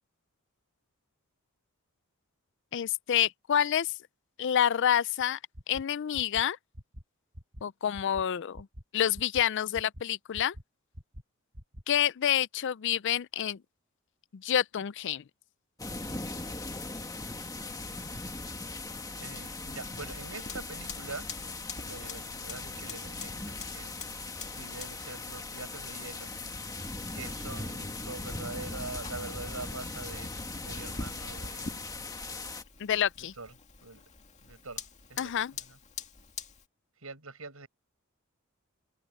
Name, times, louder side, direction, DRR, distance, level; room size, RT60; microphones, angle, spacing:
voice 1, 2.7-3.9 4.4-5.4 5.7-6.6 7.6-8.7 8.9-10.5 11.9-13.6 14.3-15.2 32.8-33.3 35.2-35.5, left 10 dB, 55° left, 0.4 m, -28 dB
sound 1, 5.2-5.3 5.5-5.8 6.1-6.4 6.7-7.0 7.3-7.6 7.9-8.2 8.5-8.8 9.1-9.4 9.7-10.0 10.3-10.6 10.9-11.2 11.5-11.8, equal, 50° right, 7.2 m, -45 dB
sound 2, 15.8-32.6, left 3 dB, 15° left, 1.7 m, -39 dB
voice 2, 19.2-21.3 21.8-23.9 24.6-26.3 26.9-31.8 33.4-33.5 33.8-34.0 34.4-34.8 35.1-35.3 37.0-37.7, right 3 dB, 80° right, 6.8 m, -44 dB
Fire, 19.8-36.6, left 4 dB, 35° left, 2.4 m, -46 dB
head